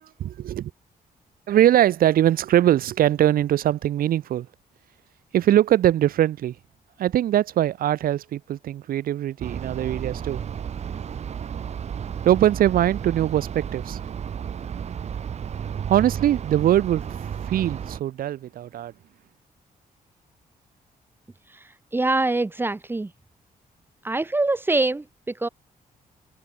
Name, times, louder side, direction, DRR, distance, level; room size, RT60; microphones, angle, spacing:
voice 1, 0.0-0.7 1.5-4.5 5.3-6.6 7.0-10.4 12.2-14.0 15.9-18.9, right 12 dB, 75° right, 1.1 m, -22 dB
sound 1, 9.4-18.0, right 8 dB, 45° right, 2.2 m, -32 dB
voice 2, 21.5-23.1 24.0-25.5, right 2 dB, 15° right, 2.2 m, -24 dB
wide cardioid pair, 155°, 15 cm